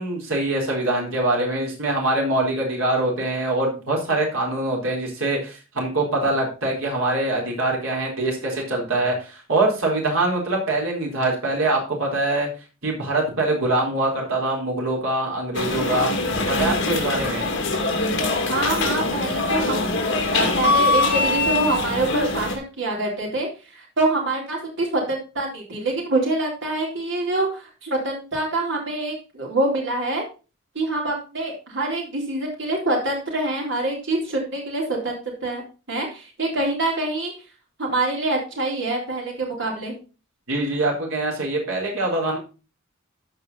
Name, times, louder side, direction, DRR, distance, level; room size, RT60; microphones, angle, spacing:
voice 1, 0.0-12.5 12.8-16.1 16.5-17.5 40.5-42.4, right 2 dB, 85° right, -1 dB, 4.0 m, -23 dB
sound 1, 15.5-22.5, left 2 dB, 60° left, 2.4 m, -23 dB
voice 2, 18.5-19.9 20.3-23.5 23.7-30.2 30.7-35.6 35.9-37.3 37.8-39.9, right 2 dB, 65° right, -1 dB, 3.8 m, -25 dB
14.0 x 4.9 x 4.1 m, 0.33 s
head